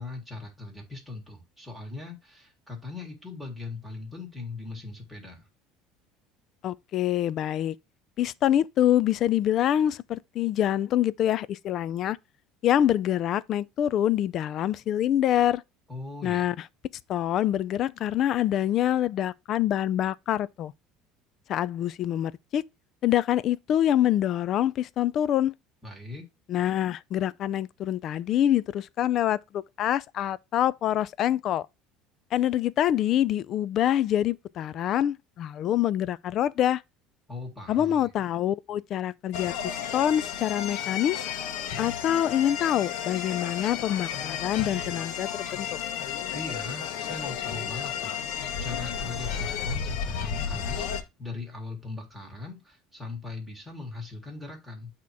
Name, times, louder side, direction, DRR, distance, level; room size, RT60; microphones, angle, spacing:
voice 1, 0.0-5.5 15.9-16.5 25.8-26.3 37.3-38.1 46.3-54.9, left 3 dB, ahead, 2.0 m, -40 dB
voice 2, 6.6-7.8 8.2-12.2 12.6-15.6 16.2-16.6 17.1-20.7 21.5-22.6 23.0-25.5 26.5-31.7 32.3-36.8 37.7-41.3 41.8-45.8, left 11 dB, 45° left, 0.3 m, -25 dB
sound 1, 39.3-51.0, left 8 dB, 70° left, 1.0 m, -32 dB
8.4 x 2.9 x 4.6 m
cardioid pair, 140°, 0 cm